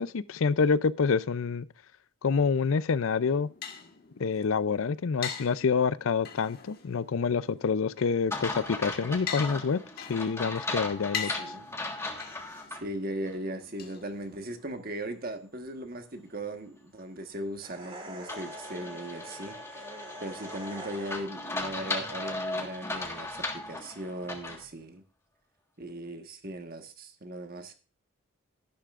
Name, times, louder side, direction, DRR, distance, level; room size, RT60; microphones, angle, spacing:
voice 1, 0.0-1.6 2.2-3.5 4.2-11.4, left 5 dB, 70° left, 0.5 m, -27 dB
sound 1, 3.0-14.7, left 7 dB, 45° left, 1.5 m, -43 dB
sound 2, 8.3-12.8 13.3-13.4 18.3-24.6, left 2 dB, 10° left, 1.5 m, -37 dB
voice 2, 11.2-11.7 12.7-19.9 20.2-25.0 25.8-27.7, right 1 dB, 45° right, 1.3 m, -38 dB
sound 3, 17.6-21.5, right 1 dB, 25° right, 1.7 m, -45 dB
12.5 x 11.5 x 2.5 m
head